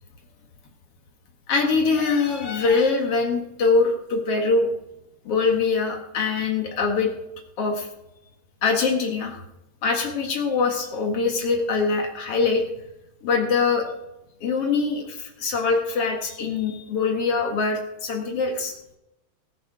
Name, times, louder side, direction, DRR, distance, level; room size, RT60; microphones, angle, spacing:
voice 1, 1.5-4.7 5.2-7.1 7.6-7.9 8.6-9.4 9.8-12.7 13.2-13.9 14.4-18.7, left 4 dB, 50° left, 2 dB, 1.9 m, -23 dB
19.0 x 7.8 x 4.9 m, 0.90 s
omnidirectional pair, 4.7 m